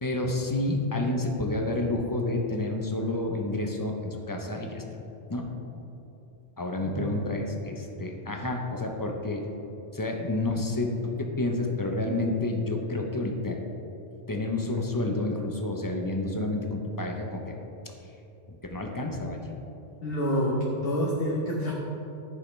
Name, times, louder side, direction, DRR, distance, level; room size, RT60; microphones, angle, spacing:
voice 1, 0.0-4.8 5.3-5.5 6.6-9.5 9.9-13.6 14.3-17.6 18.5-19.4, left 2 dB, 20° left, 2 dB, 0.6 m, -29 dB
voice 2, 6.8-7.2 20.0-21.7, equal, 55° left, -4 dB, 1.1 m, -28 dB
14.0 x 5.5 x 3.2 m, 3.0 s
omnidirectional pair, 1.2 m